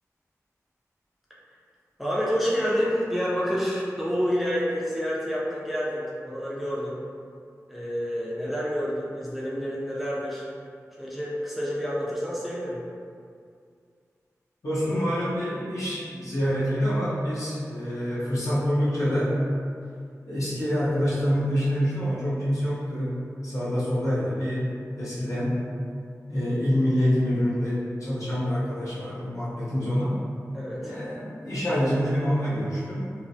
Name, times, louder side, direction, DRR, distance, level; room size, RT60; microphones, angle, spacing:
voice 1, 2.0-7.0 7.7-10.5 11.0-12.8 30.5-30.9, equal, ahead, -6 dB, 0.4 m, -28 dB
voice 2, 14.6-19.4 20.3-25.6 26.3-30.2 30.8-33.1, equal, 65° left, -10 dB, 0.9 m, -26 dB
3.1 x 2.0 x 2.6 m, 2.3 s
wide cardioid pair, 75°, 6 cm